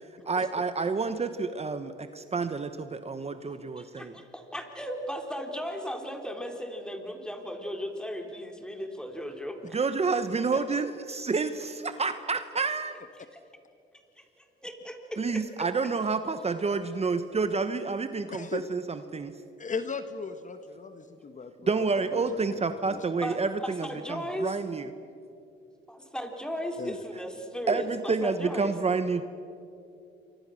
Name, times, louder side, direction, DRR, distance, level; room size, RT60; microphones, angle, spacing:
voice 1, 0.3-4.1 9.7-13.0 15.2-19.3 21.7-24.9 27.7-29.2, right 4 dB, 30° right, 10 dB, 1.1 m, -29 dB
voice 2, 3.8-9.8 13.2-13.4 14.2-15.7 23.2-24.5 25.9-28.7, equal, 5° left, 3 dB, 3.8 m, -36 dB
voice 3, 18.3-18.6 19.6-21.9 22.1-23.0 26.8-27.0, left 5 dB, 40° left, 9 dB, 1.4 m, -37 dB
28.0 x 24.5 x 6.5 m, 2.6 s
cardioid pair, 90°, 20 cm